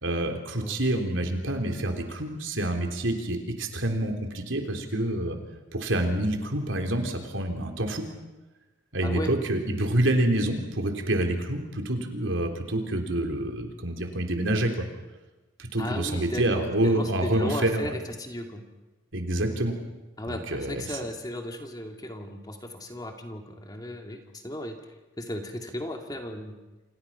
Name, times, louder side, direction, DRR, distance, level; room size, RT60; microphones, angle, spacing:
voice 1, 0.0-5.4 5.7-8.1 8.9-14.7 15.6-17.9 19.1-19.7 20.2-20.8, right 1 dB, 75° right, 4 dB, 3.7 m, -27 dB
voice 2, 15.8-18.6 20.2-24.8 25.2-26.6, left 1 dB, 20° left, 3 dB, 2.3 m, -35 dB
29.0 x 27.0 x 5.8 m, 1.1 s
head